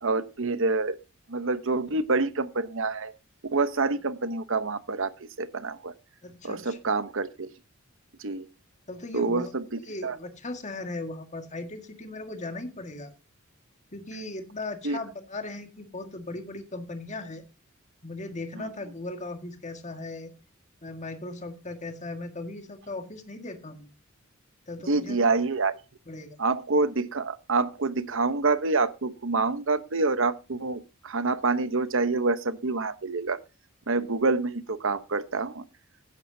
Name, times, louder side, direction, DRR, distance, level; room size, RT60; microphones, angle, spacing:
voice 1, 0.0-1.0 1.3-3.1 3.4-5.9 6.4-7.5 8.2-8.5 9.1-9.6 10.0-10.2 14.8-15.0 18.5-18.7 24.9-25.7 26.4-33.4 33.9-35.6, right 3 dB, 65° right, 1.0 m, -27 dB
voice 2, 6.2-6.8 8.9-9.5 9.9-13.1 13.9-17.4 18.0-20.3 20.8-23.9 24.7-25.2 26.1-26.4, left 2 dB, 35° left, 1.8 m, -38 dB
15.5 x 10.5 x 2.8 m
head